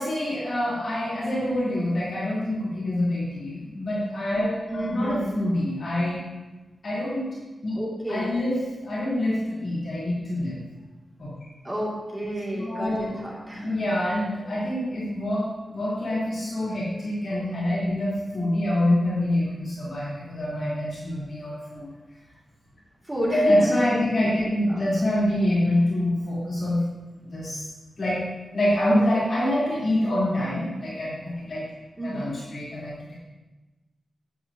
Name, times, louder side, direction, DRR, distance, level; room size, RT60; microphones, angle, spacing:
voice 1, 0.0-6.2 6.8-7.2 7.6-7.7 8.1-8.6 8.8-10.6 11.2-11.3 12.5-13.1 13.6-15.4 15.7-21.9 23.3-26.8 27.2-27.7 28.0-28.2 28.5-31.6 32.0-33.1, left 1 dB, 55° left, -9 dB, 3.7 m, -26 dB
voice 2, 4.7-5.4 7.7-8.4 11.6-13.8 23.0-23.7 24.2-24.3 24.7-24.9 32.0-32.4, right 1 dB, 15° right, -5 dB, 2.5 m, -31 dB
12.0 x 10.0 x 2.9 m, 1.2 s
wide cardioid pair, 115°, 0 cm